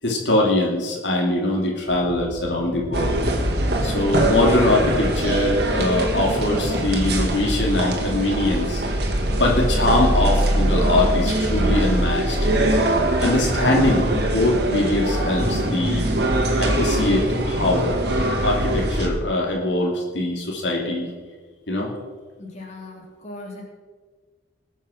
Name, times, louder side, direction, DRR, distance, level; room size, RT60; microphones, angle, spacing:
voice 1, 0.0-3.2 3.8-8.8 9.3-12.4 13.2-16.2 16.6-17.9 18.4-21.1 21.7-21.9, left 1 dB, 90° left, -1 dB, 2.8 m, -22 dB
sound 1, 1.9-8.4, equal, 25° right, 3.6 m, -36 dB
sound 2, 2.9-19.1, right 1 dB, 65° right, 2.1 m, -22 dB
voice 2, 22.4-23.6, left 2 dB, 40° left, -2 dB, 3.5 m, -38 dB
20.0 x 7.3 x 6.4 m, 1.5 s
head